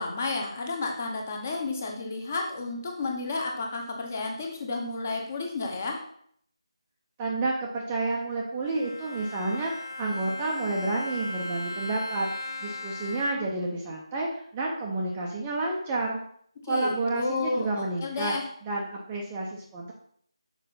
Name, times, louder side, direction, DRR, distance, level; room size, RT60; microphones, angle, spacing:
voice 1, 0.0-6.0 16.6-18.4, left 3 dB, 25° left, 2 dB, 1.1 m, -31 dB
voice 2, 7.2-16.2 16.7-18.3 18.6-19.9, right 2 dB, 10° right, -2 dB, 0.7 m, -30 dB
Bowed string instrument, 8.6-13.7, left 2 dB, 45° left, 1.0 m, -37 dB
6.5 x 4.9 x 5.5 m, 0.63 s
figure-of-eight pair, 160°, 3 cm